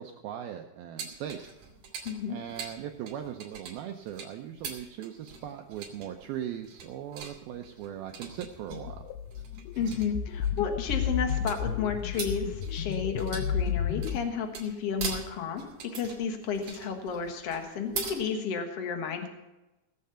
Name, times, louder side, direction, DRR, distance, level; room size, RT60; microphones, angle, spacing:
voice 1, 0.0-1.5 2.3-9.1, right 10 dB, 80° right, 5 dB, 2.2 m, -39 dB
sound 1, 1.0-18.2, right 6 dB, 55° right, 4.0 m, -42 dB
voice 2, 2.0-2.4 9.7-15.6 15.9-19.3, left 6 dB, 65° left, 5 dB, 1.5 m, -32 dB
sound 2, 8.4-14.2, left 8 dB, 85° left, 2.2 m, -32 dB
19.0 x 7.7 x 5.7 m, 1.0 s
omnidirectional pair, 5.1 m